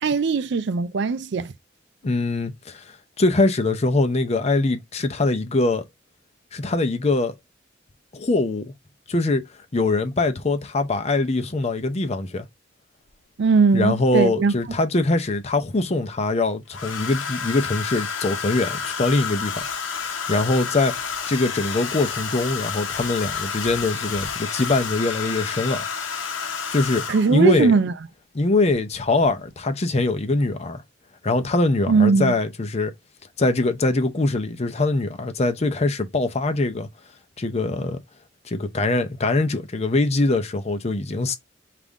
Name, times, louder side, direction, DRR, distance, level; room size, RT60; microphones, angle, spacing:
voice 1, 0.0-1.5 13.4-14.5 27.1-27.9 31.9-32.3, right 4 dB, 60° right, 0.4 m, -19 dB
voice 2, 2.0-5.8 6.5-7.4 8.1-8.7 9.1-9.4 9.7-12.5 13.7-19.7 19.9-25.9 26.7-27.7 28.3-30.8 31.2-32.9 33.4-36.9 37.4-38.0 38.4-41.4, left 2 dB, 35° left, 0.6 m, -23 dB
Domestic sounds home sounds, 13.1-13.2 14.6-15.3 16.7-27.5 28.7-29.0 29.2-29.6, left 6 dB, 90° left, 0.8 m, -30 dB
5.3 x 2.5 x 3.5 m
head